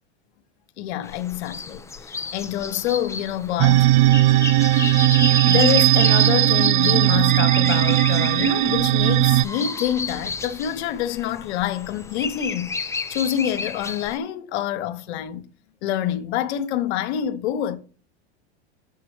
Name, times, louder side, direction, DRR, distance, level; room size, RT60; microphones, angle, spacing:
voice 1, 0.8-3.9 5.2-12.7 13.1-15.5 15.8-17.8, left 11 dB, 70° left, 0.8 m, -26 dB
sound 1, 1.0-14.2, left 4 dB, 10° left, 0.5 m, -32 dB
sound 2, 3.6-9.4, right 15 dB, 45° right, 0.4 m, -17 dB
7.0 x 5.6 x 3.2 m
hypercardioid pair, 105°, 34 cm